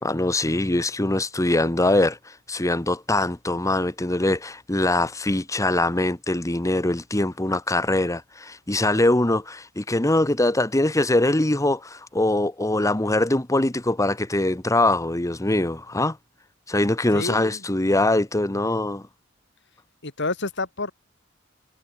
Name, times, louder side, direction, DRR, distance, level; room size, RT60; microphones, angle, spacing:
voice 1, 0.0-16.2 16.7-19.0, left 2 dB, 15° left, 1.0 m, -22 dB
voice 2, 17.1-17.6 20.0-20.9, left 3 dB, 60° left, 3.4 m, -29 dB
head